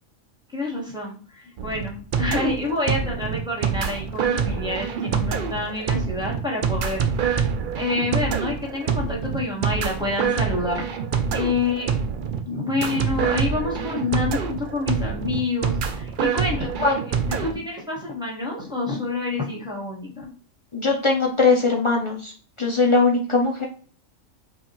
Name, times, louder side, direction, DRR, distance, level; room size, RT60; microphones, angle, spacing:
voice 1, 0.5-7.4 7.7-10.8 11.3-11.9 12.4-20.3, left 3 dB, 5° right, -3 dB, 1.1 m, -28 dB
sound 1, 1.6-17.5, right 6 dB, 85° right, 0.4 m, -26 dB
voice 2, 20.7-22.3 22.6-23.7, left 3 dB, 50° left, 0 dB, 0.3 m, -20 dB
5.4 x 2.5 x 3.0 m, 0.42 s
omnidirectional pair, 1.5 m